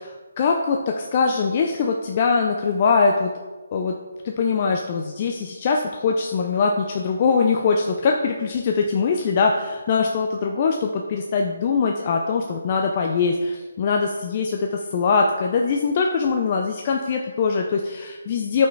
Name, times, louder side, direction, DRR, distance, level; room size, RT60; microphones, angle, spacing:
voice 1, 0.0-3.3 3.7-3.9 4.2-18.7, left 5 dB, 40° left, 2 dB, 0.6 m, -22 dB
9.3 x 5.7 x 4.0 m, 1.3 s
figure-of-eight pair, 150°, 0 cm